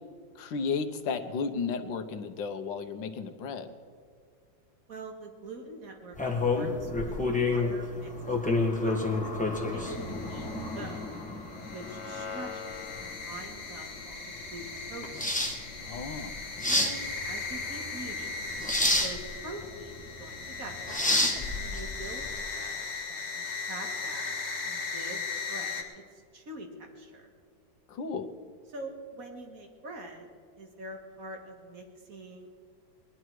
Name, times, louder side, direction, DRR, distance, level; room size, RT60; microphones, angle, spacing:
voice 1, 0.3-3.7 15.8-16.3 27.9-28.3, left 5 dB, 70° left, 7 dB, 1.6 m, -33 dB
voice 2, 4.9-8.4 8.8-9.3 9.7-11.2 11.7-15.2 16.6-18.5 19.0-21.0 21.5-24.4 24.6-25.2 25.5-27.3 28.7-30.3 30.6-32.5, right 2 dB, 45° right, 3 dB, 2.1 m, -45 dB
sound 1, 6.1-22.3, left 2 dB, 5° left, 1.3 m, -30 dB
sound 2, 9.8-25.8, left 4 dB, 35° left, 1.8 m, -38 dB
20.0 x 11.5 x 4.7 m, 2.1 s
omnidirectional pair, 2.1 m